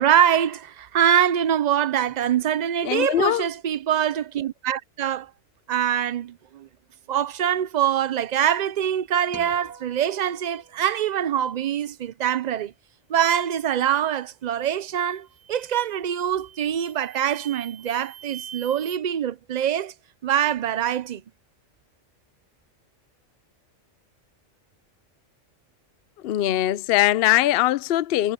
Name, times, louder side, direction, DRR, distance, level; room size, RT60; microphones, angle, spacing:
voice 1, 0.0-5.3 5.7-6.7 7.1-12.7 13.1-19.9 20.2-21.2, right 10 dB, 50° right, 0.5 m, -24 dB
voice 2, 2.8-3.4 26.2-28.3, left 14 dB, 60° left, 0.7 m, -21 dB
sound 1, 9.3-11.8, right 1 dB, 10° left, 1.5 m, -48 dB
sound 2, 14.5-14.8 15.3-15.8 16.3-19.0, right 9 dB, 75° right, 1.7 m, -44 dB
omnidirectional pair, 1.3 m